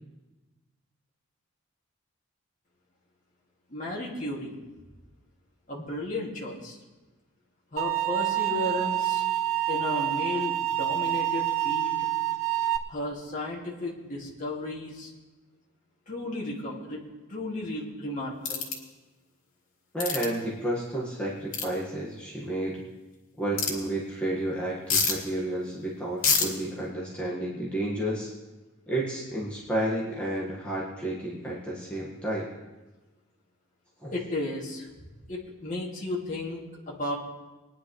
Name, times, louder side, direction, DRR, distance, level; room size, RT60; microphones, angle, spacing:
voice 1, 3.7-4.6 5.7-6.8 7.7-9.2 9.7-12.1 12.9-15.1 16.1-17.0 17.3-18.6 34.1-34.9 35.3-37.2, left 2 dB, 40° left, -4 dB, 2.5 m, -34 dB
sound 1, 7.8-12.8, right 14 dB, 80° right, 0.9 m, -27 dB
sound 2, 18.5-18.8 20.0-20.3 21.5-21.7 23.6-23.7 24.9-25.2 26.2-26.5, left 5 dB, 75° left, 2.7 m, -25 dB
voice 2, 19.9-22.8 23.4-28.3 28.9-32.5 34.0-34.1, right 1 dB, 5° left, -6 dB, 1.8 m, -31 dB
22.0 x 10.5 x 3.3 m, 1.2 s
head